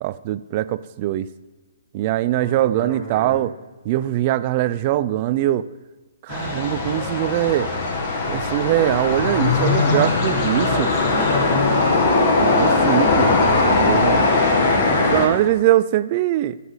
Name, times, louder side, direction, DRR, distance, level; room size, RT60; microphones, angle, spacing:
voice 1, 0.0-1.3 1.9-3.5 3.9-5.7 6.2-7.7 8.3-10.9 12.4-14.3 15.1-16.6, right 14 dB, 35° right, 16 dB, 0.4 m, -22 dB
voice 2, 2.4-3.4 10.6-11.9 14.5-15.3, right 2 dB, 15° right, -2 dB, 3.5 m, -34 dB
sound 1, 6.3-15.3, left 3 dB, 35° left, 1.9 m, -19 dB
14.0 x 8.3 x 3.9 m, 1.3 s
hypercardioid pair, 160°, 0 cm